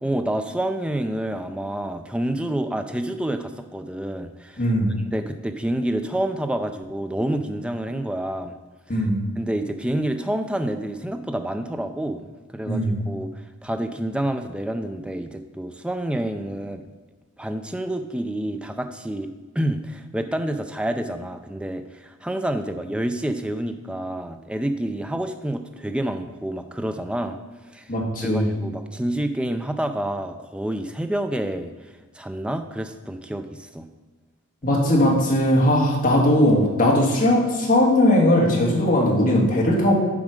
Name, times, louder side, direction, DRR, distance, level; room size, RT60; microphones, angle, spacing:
voice 1, 0.0-8.6 8.9-9.1 9.4-13.3 13.6-16.8 17.4-19.3 19.6-27.4 27.7-27.9 28.2-31.7 32.1-33.9, right 1 dB, 5° right, 7 dB, 0.3 m, -28 dB
voice 2, 4.6-4.9 8.9-9.2 12.7-13.0 27.9-28.5 34.6-39.9, left 1 dB, 40° left, -2 dB, 1.6 m, -19 dB
7.3 x 4.9 x 5.0 m, 1.3 s
head